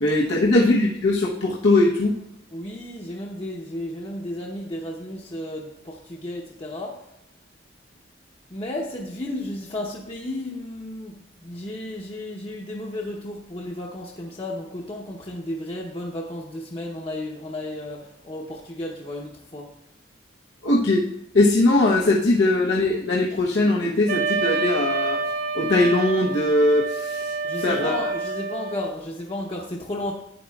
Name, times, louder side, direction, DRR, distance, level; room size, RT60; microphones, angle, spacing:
voice 1, 0.0-2.2 20.6-21.0 21.3-25.2 25.5-28.1, left 2 dB, 90° left, -4 dB, 1.0 m, -20 dB
voice 2, 2.5-7.0 8.5-19.7 27.4-30.1, left 1 dB, 30° left, -3 dB, 0.8 m, -33 dB
Wind instrument woodwind instrument, 24.1-29.0, right 4 dB, 75° right, 2.9 m, -28 dB
12.0 x 8.9 x 2.3 m, 0.77 s
head